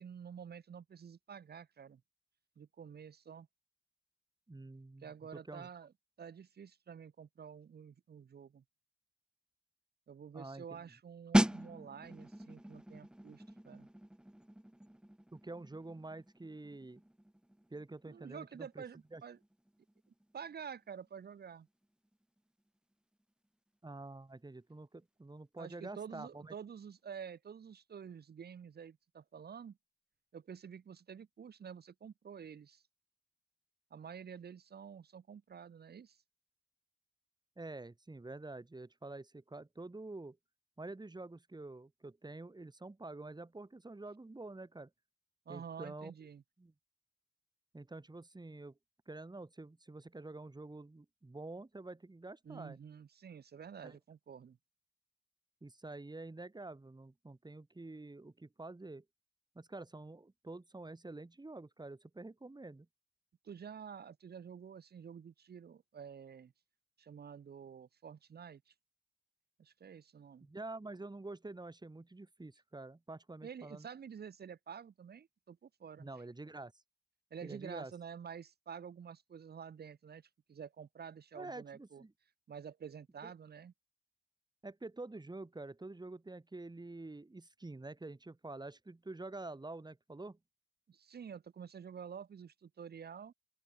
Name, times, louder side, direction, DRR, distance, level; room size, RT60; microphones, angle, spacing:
voice 1, 0.0-2.0 2.6-3.5 5.0-5.9 6.2-8.6 10.1-13.9 18.1-19.4 20.3-21.7 25.6-29.8 30.3-32.8 33.9-36.2 45.5-46.4 52.4-54.6 63.4-66.5 67.0-68.7 69.6-70.5 73.4-76.1 77.3-82.0 82.5-83.7 90.9-93.3, right 7 dB, 90° right, 2.4 m, -49 dB
voice 2, 4.5-5.1 5.5-5.7 10.3-10.8 15.3-17.0 17.7-18.8 19.1-19.2 23.8-26.5 37.6-40.4 40.8-44.9 45.5-46.1 46.6-46.7 47.7-48.7 49.1-52.8 53.8-54.0 55.6-59.0 59.5-62.9 70.4-73.9 76.0-76.7 77.4-77.9 81.3-82.1 83.2-83.3 84.6-90.4, right 2 dB, 25° right, 2.8 m, -48 dB
sound 1, 11.3-21.8 22.1-22.4, right 1 dB, 5° right, 0.6 m, -38 dB
open air
cardioid pair, 65°, 16 cm